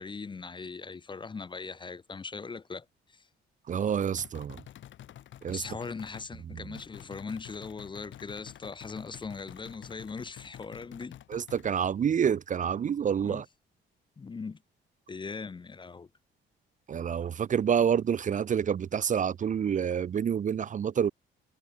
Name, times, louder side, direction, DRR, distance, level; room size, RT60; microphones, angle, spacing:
voice 1, 0.0-3.2 5.5-11.2 13.2-13.4 14.2-14.6 15.1-16.1, left 4 dB, 25° left, 0.6 m, -40 dB
voice 2, 3.7-4.6 5.4-5.6 11.3-13.4 16.9-21.1, right 8 dB, 40° right, 0.5 m, -28 dB
sound 1, 4.2-6.3 6.7-11.7, left 11 dB, 70° left, 3.7 m, -49 dB
cardioid pair, 90°, 20 cm